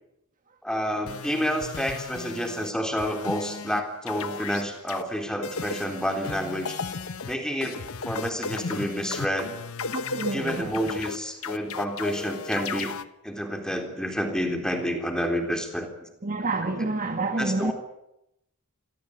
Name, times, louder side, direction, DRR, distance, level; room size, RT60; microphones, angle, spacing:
voice 1, 0.6-6.8 7.3-9.5 10.3-12.9 13.2-16.1 16.6-16.9 17.4-17.7, equal, 5° left, 4 dB, 3.7 m, -29 dB
sound 1, 1.1-2.7 3.0-3.8 4.1-5.0 5.4-13.0, left 4 dB, 75° left, 1.0 m, -35 dB
voice 2, 9.9-10.8 16.2-17.7, right 2 dB, 40° right, 6 dB, 1.5 m, -28 dB
26.5 x 17.5 x 8.6 m, 0.82 s
head